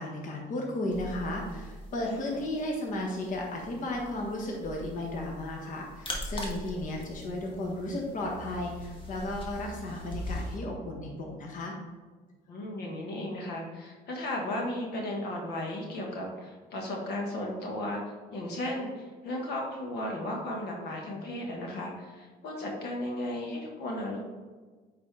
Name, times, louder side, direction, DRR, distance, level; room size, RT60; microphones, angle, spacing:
voice 1, 0.0-11.8, left 1 dB, 50° left, -1 dB, 1.4 m, -34 dB
sound 1, 0.9-10.6, left 1 dB, 30° left, 1.4 m, -42 dB
voice 2, 12.5-18.0 18.3-24.2, left 1 dB, 75° left, 0 dB, 1.4 m, -35 dB
8.6 x 4.1 x 3.3 m, 1.4 s
cardioid pair, 110°, 17 cm